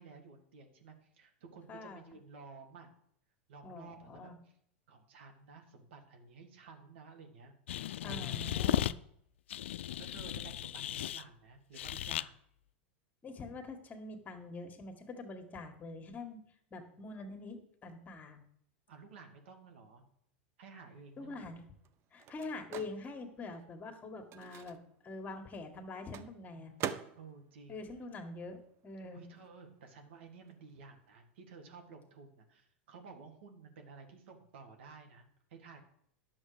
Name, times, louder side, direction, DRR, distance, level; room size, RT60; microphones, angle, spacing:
voice 1, 0.0-2.9 3.5-4.3 4.9-7.5 8.0-9.0 10.0-12.3 18.9-20.0 20.6-21.5 26.5-27.9 29.1-35.8, right 4 dB, 70° right, 4 dB, 2.1 m, -53 dB
voice 2, 1.7-2.0 3.6-4.4 8.0-8.9 13.2-16.4 16.7-18.4 21.2-21.6 22.1-24.8 25.0-26.7 27.7-29.2, left 3 dB, 25° left, 5 dB, 1.8 m, -45 dB
sound 1, 7.7-8.9 9.5-11.2 11.8-12.3, left 12 dB, 75° left, 0.4 m, -35 dB
Microwave oven, 21.0-29.0 29.3-31.2, right 9 dB, 40° right, 0.7 m, -47 dB
10.5 x 7.0 x 5.1 m, 0.68 s
hypercardioid pair, 100°, 6 cm